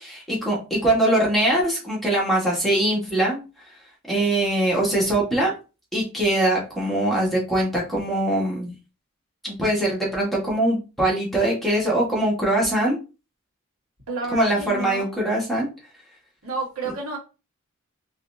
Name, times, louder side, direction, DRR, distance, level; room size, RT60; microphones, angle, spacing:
voice 1, 0.0-3.4 4.1-5.5 5.9-8.7 9.4-13.0 14.3-15.7, right 1 dB, ahead, -5 dB, 1.6 m, -22 dB
voice 2, 14.1-15.1 16.4-17.2, right 2 dB, 85° right, -2 dB, 1.7 m, -30 dB
4.1 x 3.3 x 2.7 m, 0.31 s
head